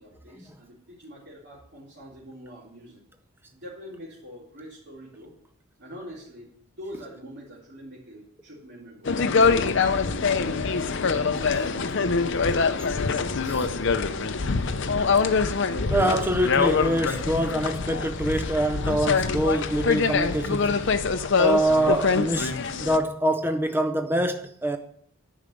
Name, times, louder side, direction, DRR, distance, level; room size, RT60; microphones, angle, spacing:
voice 1, 0.0-3.0 3.5-5.3 5.8-9.8 10.1-12.4, equal, 55° right, 3.3 m, -44 dB
sound 1, 9.1-23.0, left 4 dB, 55° left, 0.6 m, -24 dB
voice 2, 15.9-20.9 21.4-24.8, right 1 dB, 10° right, 0.5 m, -25 dB
10.0 x 5.1 x 7.8 m
head